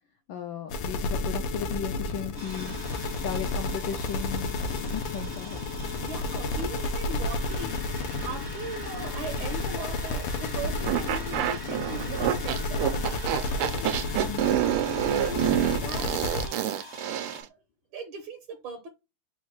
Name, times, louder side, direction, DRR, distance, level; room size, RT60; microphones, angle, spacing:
voice 1, 0.3-2.8 3.2-5.6 14.3-14.4, left 8 dB, 75° left, 1.2 m, -36 dB
sound 1, 0.7-16.5, left 3 dB, 90° left, 1.7 m, -32 dB
sound 2, 2.4-17.4, equal, 20° right, 0.6 m, -44 dB
voice 2, 6.0-14.0 15.1-16.7 17.3-17.6 17.9-18.9, right 3 dB, 70° right, 1.5 m, -39 dB
sound 3, 10.9-17.5, right 11 dB, 90° right, 1.5 m, -27 dB
4.2 x 2.4 x 4.5 m
omnidirectional pair, 2.4 m